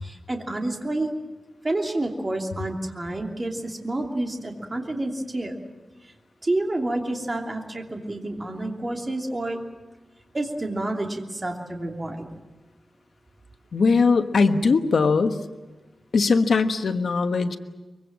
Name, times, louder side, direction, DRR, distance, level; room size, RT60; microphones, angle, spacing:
voice 1, 0.0-1.1 1.6-5.5 6.4-9.6 10.3-12.3, right 2 dB, 25° right, 1 dB, 2.9 m, -29 dB
voice 2, 13.7-15.4 16.1-17.6, left 4 dB, 75° left, 7 dB, 1.3 m, -20 dB
24.0 x 23.0 x 7.5 m, 1.2 s
wide cardioid pair, 145°, 0 cm